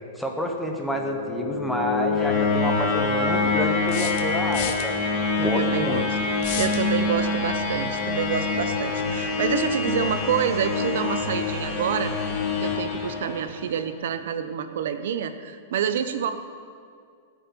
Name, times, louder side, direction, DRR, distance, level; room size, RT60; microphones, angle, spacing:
voice 1, 0.1-5.1 5.4-6.1, equal, ahead, 1 dB, 1.1 m, -29 dB
sound 1, 0.8-13.8, left 4 dB, 20° left, 1.9 m, -26 dB
sound 2, 1.8-1.9 3.9-4.9 6.4-6.8, left 10 dB, 35° left, 0.9 m, -32 dB
voice 2, 5.3-6.2 6.5-12.1 12.6-16.3, right 8 dB, 55° right, 10 dB, 1.0 m, -27 dB
13.0 x 8.5 x 9.9 m, 2.2 s
supercardioid pair, 180°, 0 cm